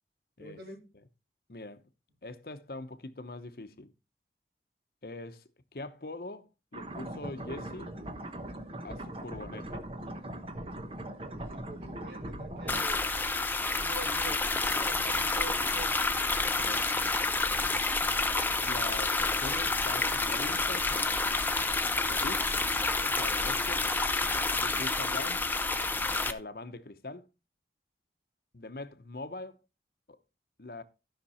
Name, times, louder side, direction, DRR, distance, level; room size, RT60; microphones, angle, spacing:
voice 1, 0.4-0.9 11.4-13.1 13.6-15.9 24.5-24.8, right 2 dB, 65° right, 3.2 m, -46 dB
voice 2, 1.5-1.8 2.2-3.9 5.0-8.0 8.8-9.8 16.6-16.9 18.4-21.1 22.0-22.5 23.0-23.9 24.6-25.4 26.0-27.3 28.5-29.6 30.1-30.2 30.6-30.8, left 2 dB, 55° left, 0.9 m, -43 dB
sound 1, 6.7-12.8, right 1 dB, 30° right, 1.0 m, -40 dB
sound 2, 12.7-26.3, left 3 dB, 10° left, 0.5 m, -29 dB
13.0 x 6.0 x 4.3 m
head